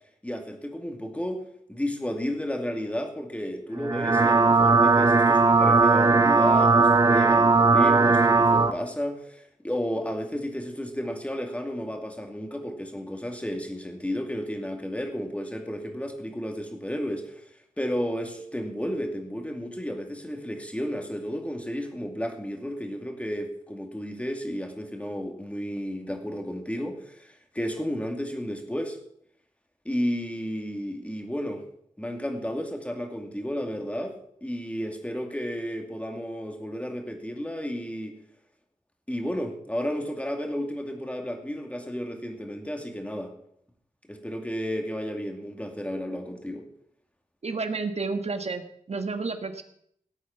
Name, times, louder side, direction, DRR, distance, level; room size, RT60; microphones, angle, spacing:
voice 1, 0.2-1.4 1.7-29.0 29.8-31.6 32.0-34.2 34.4-38.2 39.1-43.3 44.1-46.6, equal, 10° left, 3 dB, 2.4 m, -32 dB
sound 1, 3.8-8.7, right 3 dB, 25° right, 0.8 m, -19 dB
voice 2, 47.4-49.6, right 4 dB, 50° right, 7 dB, 1.5 m, -31 dB
17.5 x 8.5 x 5.9 m, 0.69 s
wide cardioid pair, 105°, 14 cm